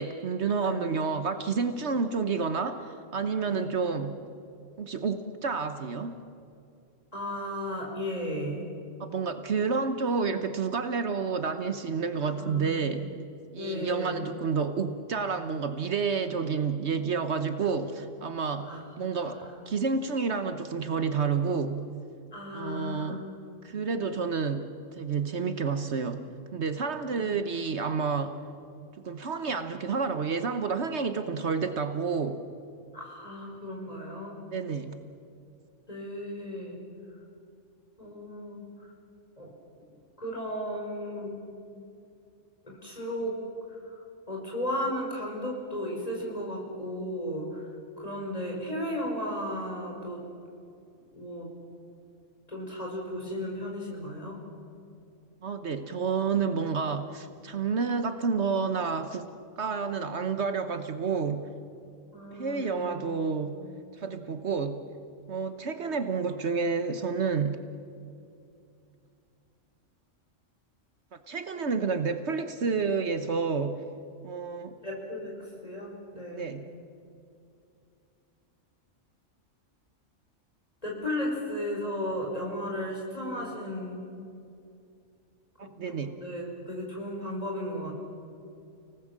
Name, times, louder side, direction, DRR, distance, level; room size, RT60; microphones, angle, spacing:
voice 1, 0.0-4.2 4.8-6.2 9.0-13.1 13.5-21.9 22.5-23.2 23.6-26.2 26.5-28.3 29.0-32.4 34.5-35.0 55.4-59.3 59.6-61.5 62.3-63.6 64.0-64.8 65.3-67.6 71.3-73.8 74.2-74.7 76.4-76.6 85.6-86.1, right 5 dB, 65° right, 9 dB, 1.3 m, -30 dB
voice 2, 0.6-1.0 3.4-3.7 7.1-8.7 12.3-12.9 13.6-14.4 18.6-19.6 22.3-23.2 27.2-27.4 32.9-34.3 35.9-36.8 38.0-38.6 39.4-39.5 40.2-41.4 42.6-43.3 43.9-44.0 44.3-47.7 48.0-50.2 51.1-51.5 52.5-54.4 62.1-63.1 63.5-63.7 74.8-76.6 80.8-84.0 85.9-88.0, equal, 30° left, -2 dB, 5.6 m, -35 dB
30.0 x 19.0 x 7.5 m, 2.5 s
omnidirectional pair, 1.3 m